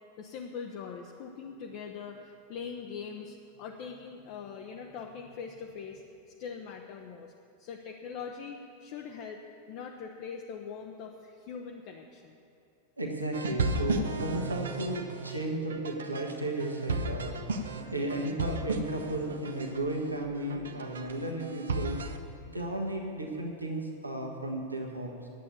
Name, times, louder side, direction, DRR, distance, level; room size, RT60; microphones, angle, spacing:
voice 1, 0.2-6.0 6.4-7.3 7.6-9.4 9.7-12.4 15.3-15.4, left 6 dB, 45° left, 2 dB, 0.8 m, -42 dB
voice 2, 13.0-17.3 17.9-22.0 22.5-25.3, right 1 dB, 85° right, 0 dB, 1.3 m, -34 dB
sound 1, 13.3-22.2, right 2 dB, 65° right, 0.8 m, -35 dB
10.0 x 8.5 x 8.4 m, 2.6 s
figure-of-eight pair, 90°, 0 cm